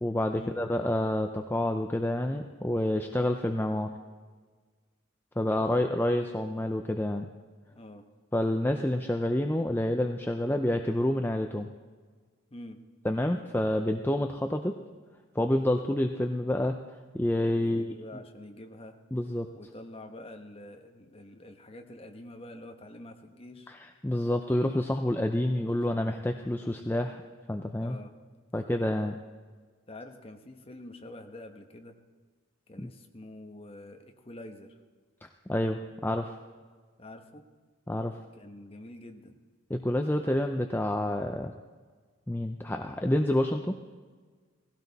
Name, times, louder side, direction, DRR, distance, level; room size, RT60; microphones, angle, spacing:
voice 1, 0.0-3.9 5.4-7.3 8.3-11.7 13.0-14.8 15.4-16.8 17.1-17.9 19.1-19.5 23.7-27.2 27.5-28.0 28.5-29.2 35.2-36.4 37.9-38.1 39.7-41.5 42.3-43.7, left 1 dB, 10° left, 5 dB, 0.5 m, -28 dB
voice 2, 5.4-6.0 7.7-8.1 12.5-12.8 17.5-19.0 19.6-23.7 25.4-25.6 27.8-28.1 29.9-32.0 32.7-34.8 37.0-37.4 38.3-39.4, left 1 dB, 25° left, 5 dB, 1.1 m, -47 dB
18.0 x 16.0 x 4.1 m, 1.5 s
head